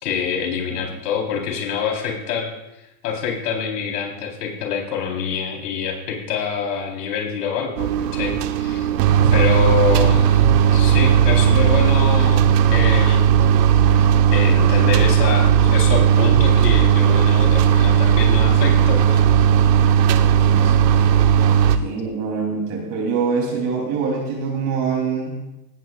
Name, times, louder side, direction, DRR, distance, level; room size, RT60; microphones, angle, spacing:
voice 1, 0.0-2.5 3.0-8.9 9.3-12.4 12.7-13.2 14.3-19.2 20.6-20.7, left 6 dB, 70° left, 0 dB, 4.4 m, -26 dB
sound 1, 7.8-21.8, right 8 dB, 75° right, 1.2 m, -16 dB
voice 2, 8.9-9.5 20.4-20.7 21.7-25.4, right 5 dB, 35° right, -1 dB, 3.5 m, -25 dB
18.5 x 16.5 x 2.5 m, 0.91 s
supercardioid pair, 150°, 49 cm